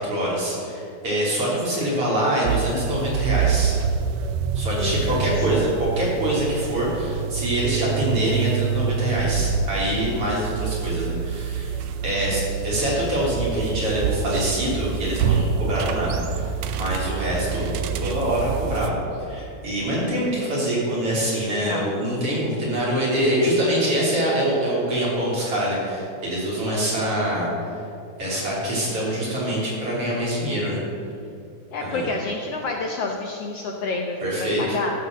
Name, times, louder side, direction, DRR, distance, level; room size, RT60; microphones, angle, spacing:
voice 1, 0.0-3.8 4.5-11.7 12.0-16.4 16.8-17.7 18.0-19.0 19.3-27.8 28.2-30.8 31.8-32.1 34.2-34.8, right 1 dB, 50° right, -6 dB, 4.1 m, -24 dB
sound 1, 2.4-18.9, right 6 dB, 75° right, 1.6 m, -26 dB
voice 2, 4.8-5.7 12.2-12.4 21.6-21.9 31.7-34.9, left 3 dB, 70° left, 1 dB, 1.6 m, -29 dB
13.0 x 6.3 x 7.3 m, 2.5 s
omnidirectional pair, 3.5 m